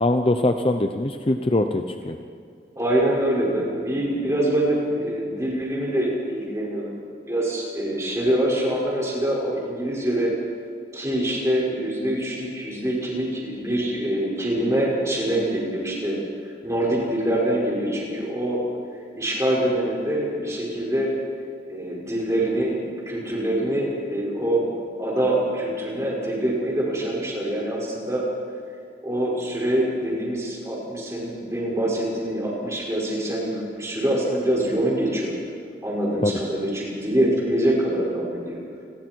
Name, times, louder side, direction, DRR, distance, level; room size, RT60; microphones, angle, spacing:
voice 1, 0.0-2.2 36.2-36.4, left 1 dB, 30° left, 6 dB, 0.7 m, -22 dB
voice 2, 2.8-7.0 7.3-10.3 10.9-16.2 16.6-18.6 19.2-21.1 21.7-28.2 29.0-35.4 35.8-38.6, right 1 dB, 15° right, -4 dB, 5.8 m, -24 dB
30.0 x 22.0 x 4.7 m, 2.3 s
head